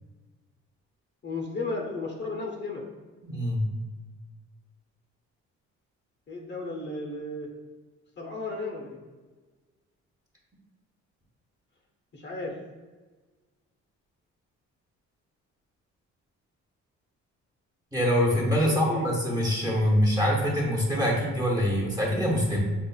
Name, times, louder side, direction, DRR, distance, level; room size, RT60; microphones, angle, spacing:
voice 1, 1.2-2.8 6.3-7.5 8.2-9.0 12.1-12.6 18.6-19.1, left 3 dB, 35° left, 0 dB, 0.8 m, -34 dB
voice 2, 3.2-3.7 17.9-22.6, equal, 10° right, -2 dB, 0.9 m, -24 dB
5.4 x 2.4 x 2.3 m, 1.3 s
cardioid pair, 90°, 30 cm